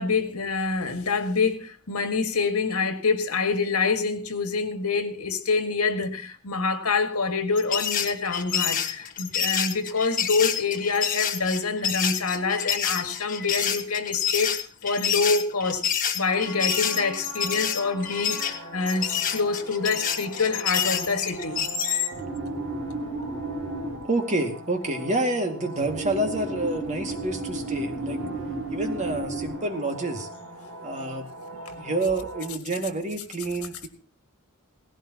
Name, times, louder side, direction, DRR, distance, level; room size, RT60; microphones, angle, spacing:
voice 1, 0.0-15.8 16.1-21.7 28.0-28.7 31.7-31.8, left 4 dB, 85° left, 1.9 m, -26 dB
sound 1, 7.6-22.1, left 8 dB, 40° left, 1.5 m, -28 dB
sound 2, 16.2-32.5, right 2 dB, 60° right, 6.4 m, -36 dB
voice 2, 24.1-28.2 28.7-30.3 30.8-31.3 31.8-33.9, right 2 dB, 35° right, 2.1 m, -28 dB
18.0 x 16.5 x 2.9 m
head